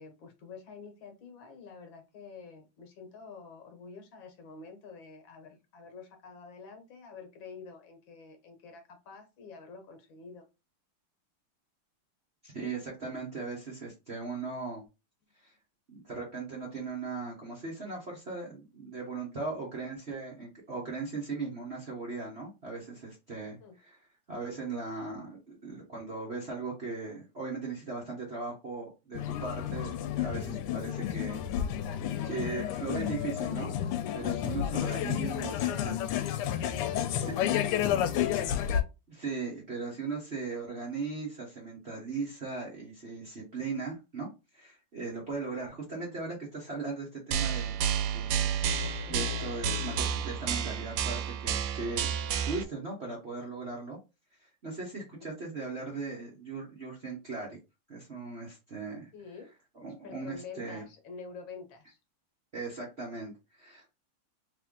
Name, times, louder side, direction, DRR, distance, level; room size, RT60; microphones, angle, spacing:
voice 1, 0.0-10.5 23.6-23.7 35.0-36.2 36.6-38.4 48.9-49.4 54.9-55.3 59.1-59.5 60.0-62.0, left 4 dB, 65° left, 5 dB, 1.6 m, -48 dB
voice 2, 12.4-14.8 15.4-15.5 15.9-24.0 24.3-31.8 32.2-33.7 34.1-36.0 37.1-37.4 39.1-47.8 48.1-52.1 52.4-54.0 54.4-57.6 57.9-59.1 59.8-60.8 62.5-63.9, right 4 dB, 40° right, -3 dB, 0.9 m, -38 dB
sound 1, 29.1-38.8, left 10 dB, 85° left, 1.5 m, -31 dB
sound 2, 47.3-52.6, right 7 dB, 85° right, 1.5 m, -30 dB
3.4 x 3.4 x 3.6 m, 0.27 s
omnidirectional pair, 2.4 m